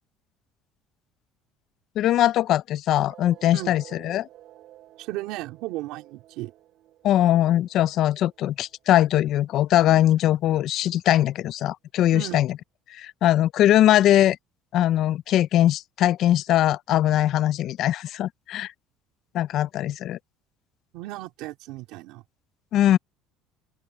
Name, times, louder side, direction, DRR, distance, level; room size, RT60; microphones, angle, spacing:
voice 1, 2.0-4.3 7.0-12.5 12.9-14.4 14.7-18.7 19.3-20.2 22.7-23.0, left 12 dB, 50° left, 0.4 m, -21 dB
sound 1, 3.0-10.0, right 13 dB, 50° right, 5.8 m, -52 dB
voice 2, 5.0-6.5 12.1-12.4 20.9-22.2, right 18 dB, 70° right, 2.9 m, -35 dB
open air
cardioid pair, 165°, 0 cm